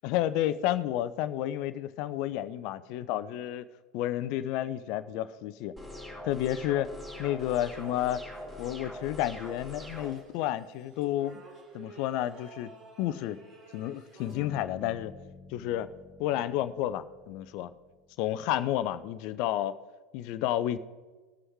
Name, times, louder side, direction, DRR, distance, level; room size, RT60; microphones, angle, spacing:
voice 1, 0.0-3.7 3.9-5.7 6.2-6.9 7.2-8.2 8.6-11.4 11.7-12.7 13.0-13.4 13.7-15.1 15.5-15.9 16.2-17.7 18.2-19.8 20.1-20.8, left 13 dB, 55° left, 14 dB, 0.6 m, -31 dB
sound 1, 5.8-10.1, left 1 dB, 15° right, 3.3 m, -43 dB
sound 2, 7.1-14.5, right 2 dB, 40° right, 3.1 m, -54 dB
Bass guitar, 14.3-18.2, left 4 dB, 20° left, 1.9 m, -50 dB
18.5 x 6.3 x 4.6 m, 1.3 s
hypercardioid pair, 80°, 0 cm